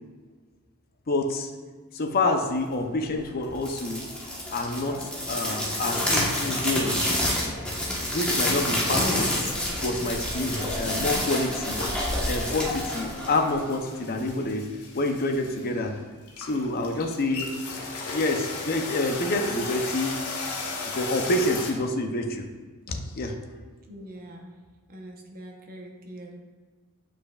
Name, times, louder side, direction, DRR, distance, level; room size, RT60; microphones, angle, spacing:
voice 1, 1.1-1.5 1.9-4.2 4.5-7.3 8.0-9.6 9.8-11.8 12.3-16.0 16.4-17.6 18.1-20.3 21.0-22.5 22.9-23.4, left 2 dB, 45° left, 4 dB, 0.6 m, -28 dB
sound 1, 3.5-13.9, left 1 dB, 5° left, 1.1 m, -28 dB
sound 2, 9.2-21.7, left 3 dB, 85° left, 1.0 m, -37 dB
voice 2, 23.8-26.4, right 1 dB, 40° right, 1 dB, 0.9 m, -44 dB
8.5 x 5.1 x 2.3 m, 1.4 s
head